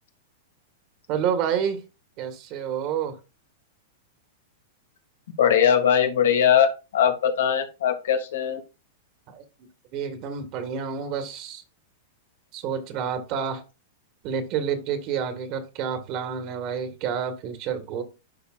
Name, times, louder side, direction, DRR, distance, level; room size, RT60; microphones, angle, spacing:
voice 1, 1.1-1.8 2.2-3.2 9.3-9.4 9.9-11.6 12.5-13.6 14.2-18.0, right 7 dB, 45° right, 7 dB, 1.6 m, -29 dB
voice 2, 5.4-8.6, left 8 dB, 80° left, 4 dB, 2.2 m, -20 dB
11.5 x 4.9 x 2.5 m, 0.29 s
hypercardioid pair, 135°, 0 cm